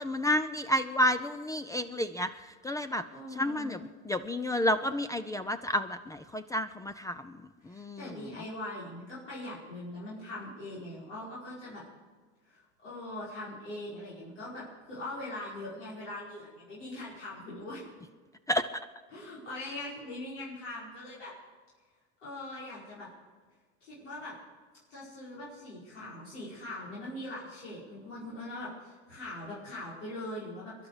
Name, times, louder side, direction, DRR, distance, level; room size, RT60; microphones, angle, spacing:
voice 1, 0.0-3.0 3.3-7.4 7.6-8.3 18.5-18.8, left 1 dB, 10° left, 12 dB, 0.4 m, -31 dB
voice 2, 3.1-3.8 7.6-11.8 12.5-17.8 19.1-21.3 22.2-23.1 23.8-24.3 24.9-30.9, left 1 dB, 90° left, -8 dB, 5.4 m, -41 dB
22.5 x 11.5 x 4.9 m, 1.5 s
hypercardioid pair, 105°, 35 cm